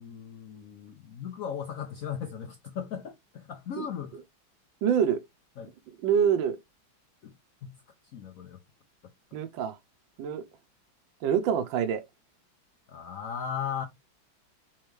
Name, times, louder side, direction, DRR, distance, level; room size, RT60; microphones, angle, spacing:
voice 1, 0.0-4.2 5.6-5.7 7.2-8.6 12.9-13.9, left 8 dB, 75° left, 0.7 m, -37 dB
voice 2, 4.8-5.2 6.0-6.6 9.3-9.8 10.2-10.4 11.2-12.0, right 8 dB, 75° right, 1.3 m, -25 dB
4.4 x 3.8 x 3.1 m
omnidirectional pair, 2.2 m